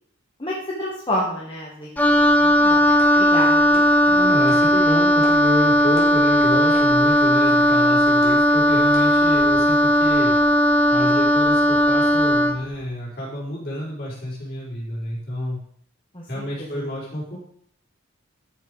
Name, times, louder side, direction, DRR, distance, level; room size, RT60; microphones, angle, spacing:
voice 1, 0.4-2.8 3.2-3.8 16.1-16.4 16.7-16.8, left 1 dB, 25° left, -4 dB, 1.6 m, -29 dB
Wind instrument woodwind instrument, 2.0-12.6, equal, 10° left, 0.6 m, -17 dB
sound 1, 2.6-8.6 8.9-9.0, left 2 dB, 75° left, 3.3 m, -42 dB
voice 2, 4.0-10.3 10.9-15.6 16.3-17.4, equal, 50° left, -6 dB, 4.8 m, -29 dB
11.5 x 5.8 x 4.9 m, 0.64 s
head